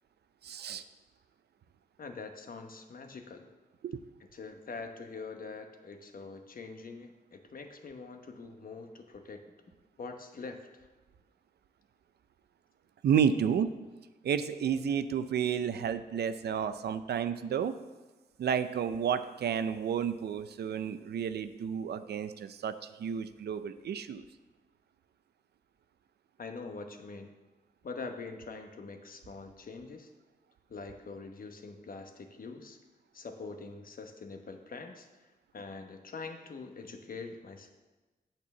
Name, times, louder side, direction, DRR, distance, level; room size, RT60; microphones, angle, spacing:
voice 1, 0.4-0.8 3.8-4.0 13.0-13.7 14.2-17.8 18.4-24.3, right 7 dB, 75° right, 11 dB, 0.5 m, -31 dB
voice 2, 2.0-3.5 4.3-9.4 10.0-10.9 26.4-27.3 27.8-30.1 30.7-32.8 33.1-35.1 35.5-37.7, left 4 dB, 60° left, 6 dB, 1.0 m, -44 dB
8.4 x 4.5 x 6.9 m, 1.2 s
cardioid pair, 70°, 17 cm